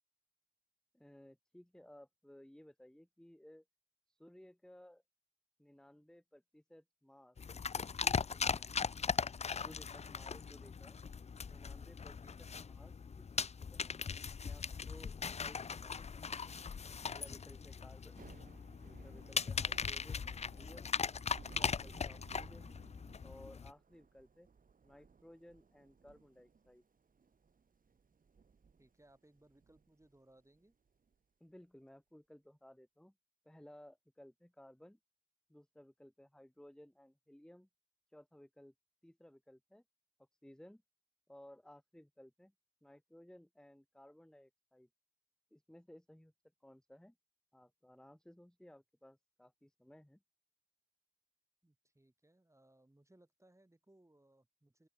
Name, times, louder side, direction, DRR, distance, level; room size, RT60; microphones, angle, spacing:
voice 1, 0.9-3.6 4.1-5.0 5.6-7.4 7.8-8.8 9.5-11.0 11.5-14.1 14.4-16.4 17.0-18.2 18.8-20.9 21.4-22.8 23.2-24.5 24.8-26.8 31.4-33.1 33.4-35.0 35.5-37.7 38.1-38.7 39.0-39.8 40.4-40.8 41.3-42.5 42.8-44.9 45.5-46.3 46.6-47.1 47.5-50.2, left 1 dB, 5° left, 1.2 m, -59 dB
sound 1, 7.4-23.7, left 6 dB, 35° left, 0.4 m, -39 dB
voice 2, 12.0-12.4 17.6-17.9 28.8-30.7 51.6-54.9, right 1 dB, 15° right, 4.6 m, -67 dB
Thunder / Rain, 18.0-31.1, right 5 dB, 45° right, 1.0 m, -61 dB
open air
cardioid pair, 55°, 20 cm